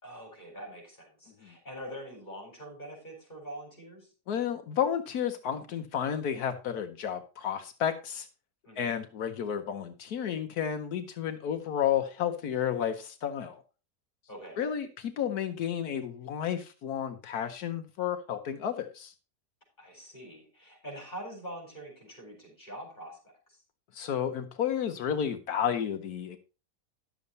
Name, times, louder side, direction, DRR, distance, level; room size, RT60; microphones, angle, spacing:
voice 1, 0.0-4.1 8.6-8.9 14.3-14.7 19.8-23.2 23.5-23.6, equal, 30° left, 0 dB, 4.9 m, -44 dB
voice 2, 4.3-8.3 8.8-13.6 14.6-19.1 23.9-26.4, left 9 dB, 75° left, 8 dB, 1.3 m, -32 dB
11.5 x 7.1 x 4.0 m, 0.32 s
omnidirectional pair, 1.6 m